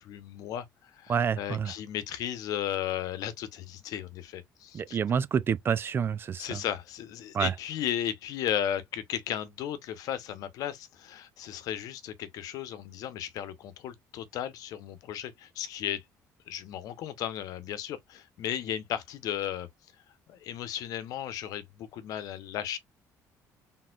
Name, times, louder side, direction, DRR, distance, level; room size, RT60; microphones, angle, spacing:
voice 1, 0.0-5.0 6.4-16.0 16.5-19.7 20.3-22.8, left 10 dB, 70° left, 0.9 m, -35 dB
voice 2, 1.1-1.7 4.7-6.6 7.3-7.5, right 7 dB, 35° right, 0.4 m, -28 dB
4.3 x 3.6 x 2.4 m
cardioid pair, 125°, 6 cm